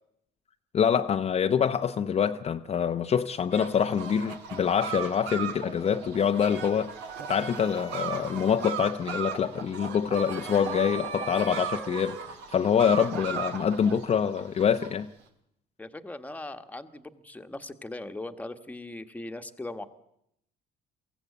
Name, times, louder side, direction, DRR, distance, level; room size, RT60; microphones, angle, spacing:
voice 1, 0.7-6.9 7.3-12.2 12.5-15.1, left 7 dB, 40° left, 0.7 m, -25 dB
sound 1, 3.5-14.9, right 7 dB, 90° right, 2.3 m, -37 dB
sound 2, 7.1-14.5, right 7 dB, 70° right, 2.3 m, -43 dB
voice 2, 15.8-19.8, left 2 dB, 10° left, 1.3 m, -39 dB
23.5 x 15.5 x 8.4 m
cardioid pair, 110°, 17 cm